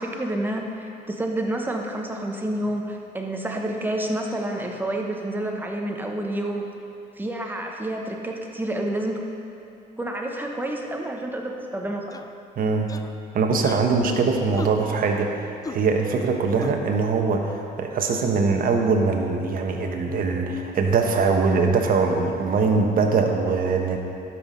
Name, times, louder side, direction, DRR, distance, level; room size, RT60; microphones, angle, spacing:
voice 1, 0.0-6.7 7.2-9.2 10.0-12.0, right 1 dB, 10° right, 1 dB, 1.3 m, -29 dB
sound 1, 12.1-12.3 12.9-13.2 13.6-13.9 14.5-14.8 15.6-15.8 16.6-16.7, left 4 dB, 20° left, 0.5 m, -36 dB
voice 2, 12.6-12.9 13.3-24.0, right 4 dB, 55° right, 3 dB, 1.3 m, -22 dB
12.5 x 5.9 x 5.5 m, 2.7 s
cardioid pair, 85°, 18 cm